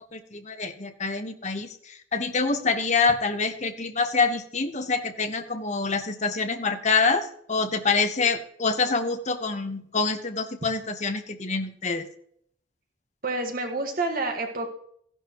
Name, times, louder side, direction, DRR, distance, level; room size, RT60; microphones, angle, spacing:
voice 1, 0.1-12.1, left 4 dB, 35° left, 7 dB, 1.0 m, -26 dB
voice 2, 13.2-14.7, right 2 dB, 45° right, 3 dB, 1.6 m, -28 dB
15.0 x 11.0 x 3.0 m, 0.66 s
head